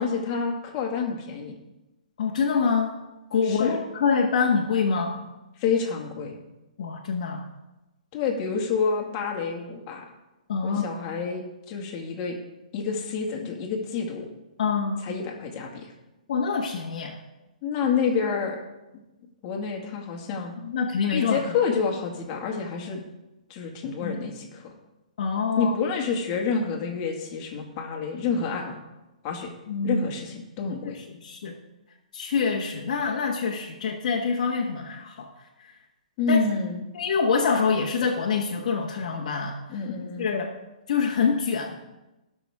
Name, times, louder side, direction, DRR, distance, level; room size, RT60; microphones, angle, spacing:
voice 1, 0.0-1.5 3.4-3.8 5.6-6.4 8.1-10.1 10.6-12.4 12.7-14.3 15.0-15.9 17.6-18.6 19.4-20.5 21.1-23.0 23.5-24.7 25.6-28.8 29.2-29.5 29.8-31.0 36.2-36.8 39.7-40.3, left 5 dB, 30° left, 0 dB, 2.1 m, -28 dB
voice 2, 2.2-3.0 3.3-5.2 6.8-7.5 10.5-10.8 14.6-15.1 16.3-17.2 20.6-21.4 24.0-24.2 25.2-25.7 29.7-30.0 30.8-30.9 31.2-31.5 32.1-35.3 36.3-36.4 36.9-39.8 40.2-40.5 40.9-41.8, left 5 dB, 55° left, -4 dB, 1.4 m, -25 dB
18.0 x 6.2 x 3.6 m, 1.0 s
hypercardioid pair, 150°, 4 cm